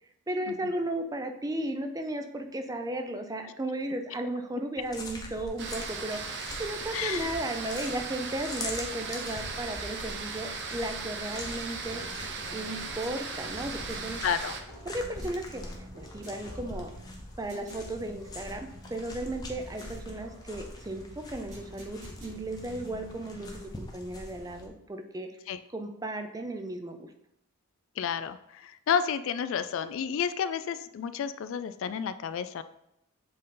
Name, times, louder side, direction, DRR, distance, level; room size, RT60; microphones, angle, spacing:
voice 1, 0.3-12.0 12.5-14.2 14.9-16.9 17.4-25.3 25.7-27.1, right 1 dB, 15° right, 6 dB, 0.4 m, -35 dB
sound 1, 4.8-24.7, left 1 dB, 20° left, 0.8 m, -44 dB
sound 2, 5.6-14.6, right 4 dB, 55° right, 0.7 m, -38 dB
voice 2, 6.9-7.3 14.2-14.5 25.5-25.6 28.0-32.6, left 7 dB, 60° left, 12 dB, 0.3 m, -31 dB
sound 3, 11.9-23.7, right 1 dB, 75° right, 2.3 m, -50 dB
7.5 x 3.9 x 3.8 m, 0.81 s
head